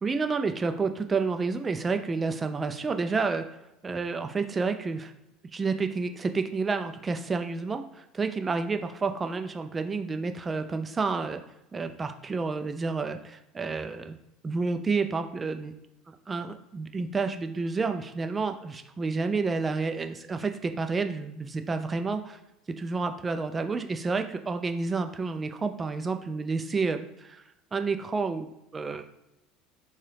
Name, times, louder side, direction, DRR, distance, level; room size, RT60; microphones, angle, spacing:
voice 1, 0.0-3.5 3.8-5.1 5.5-11.4 11.7-14.2 14.4-15.7 16.1-22.4 22.8-27.4 27.7-29.0, right 4 dB, 25° right, 7 dB, 0.3 m, -30 dB
3.6 x 2.8 x 3.2 m, 0.89 s
hypercardioid pair, 70°, 0 cm